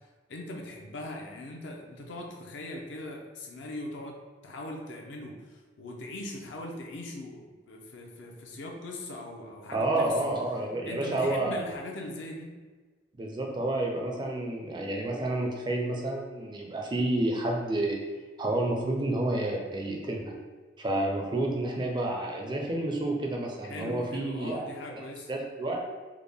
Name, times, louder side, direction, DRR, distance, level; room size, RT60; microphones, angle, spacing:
voice 1, 0.3-4.1 4.4-10.3 10.8-12.5 23.6-25.3, left 1 dB, 70° left, 1 dB, 0.5 m, -40 dB
voice 2, 9.7-11.7 13.2-18.0 18.4-20.3 20.8-25.0 25.3-25.8, right 1 dB, 25° right, 0 dB, 0.4 m, -30 dB
3.5 x 2.2 x 3.4 m, 1.4 s
head